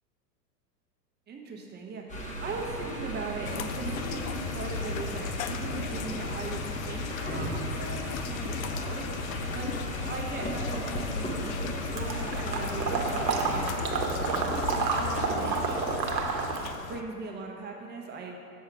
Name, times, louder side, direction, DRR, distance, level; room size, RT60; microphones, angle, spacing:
voice 1, 1.3-9.0 9.5-9.7 10.0-11.6 11.9-16.0 16.8-18.4, right 4 dB, 20° right, 1 dB, 0.8 m, -39 dB
sound 1, 2.1-13.7, right 2 dB, 15° left, 1.0 m, -36 dB
sound 2, 3.4-17.0, left 7 dB, 55° left, 0.5 m, -36 dB
Water / Liquid, 12.0-16.8, right 4 dB, 80° right, 1.0 m, -30 dB
7.2 x 4.6 x 4.6 m, 2.4 s
hypercardioid pair, 95°, 50 cm